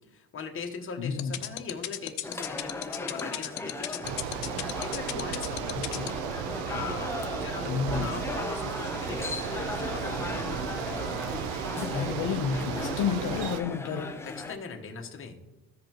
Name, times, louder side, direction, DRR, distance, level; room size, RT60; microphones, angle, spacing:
voice 1, 0.1-5.8 6.6-11.6 14.2-15.4, left 5 dB, 30° left, 2 dB, 1.1 m, -40 dB
voice 2, 1.0-1.3 5.7-6.2 7.7-8.3 11.8-14.2, left 6 dB, 45° left, 4 dB, 0.7 m, -31 dB
sound 1, 1.2-6.1, left 16 dB, 90° left, 0.8 m, -33 dB
sound 2, 2.2-14.5, left 2 dB, 5° left, 0.3 m, -37 dB
Bicycle, 4.0-13.6, right 8 dB, 80° right, 0.7 m, -34 dB
14.5 x 5.2 x 2.9 m, 1.1 s
cardioid pair, 130°, 43 cm